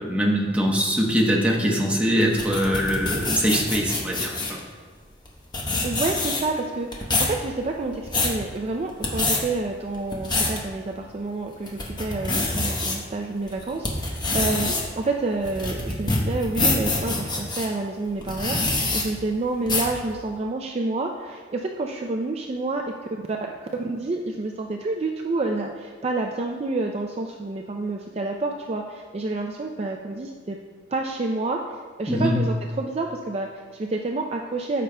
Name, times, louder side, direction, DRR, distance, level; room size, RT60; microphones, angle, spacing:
voice 1, 0.0-4.6 32.1-32.4, equal, 5° right, -2 dB, 0.9 m, -22 dB
sound 1, 2.2-4.6 5.3-5.4 5.5-6.6 6.9-7.4 7.8-8.4 8.9-9.4 9.9-10.6 11.1-11.2 11.7-13.0 13.5-17.7 18.2-19.0 19.7-20.0, left 2 dB, 25° left, 1.0 m, -25 dB
voice 2, 5.8-22.8 23.3-23.4 23.8-30.6 30.9-34.8, right 2 dB, 30° right, 1 dB, 0.4 m, -29 dB
13.5 x 5.5 x 2.2 m, 1.5 s
head